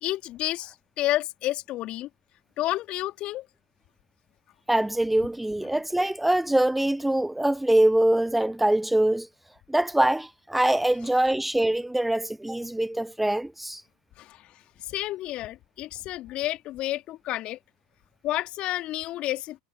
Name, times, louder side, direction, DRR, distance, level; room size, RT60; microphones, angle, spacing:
voice 1, 0.0-2.1 2.6-3.5 14.2-14.4 14.9-17.6 18.2-19.6, left 15 dB, 45° left, 2.5 m, -30 dB
voice 2, 4.7-9.3 9.7-13.8, right 1 dB, 5° right, 0.6 m, -23 dB
figure-of-eight pair, 80°, 3 cm